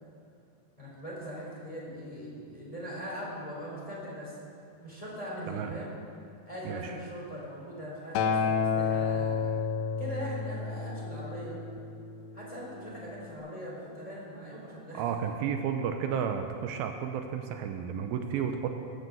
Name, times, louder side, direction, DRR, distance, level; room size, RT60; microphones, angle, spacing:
voice 1, 0.8-4.4 4.8-5.9 6.5-11.6 12.3-15.0, equal, 10° left, -5 dB, 3.9 m, -41 dB
voice 2, 6.6-7.0 14.9-18.8, right 7 dB, 80° right, 5 dB, 2.5 m, -32 dB
Acoustic guitar, 8.2-12.5 13.3-13.4, left 5 dB, 75° left, 2.5 m, -30 dB
19.5 x 7.9 x 7.8 m, 2.4 s
omnidirectional pair, 4.3 m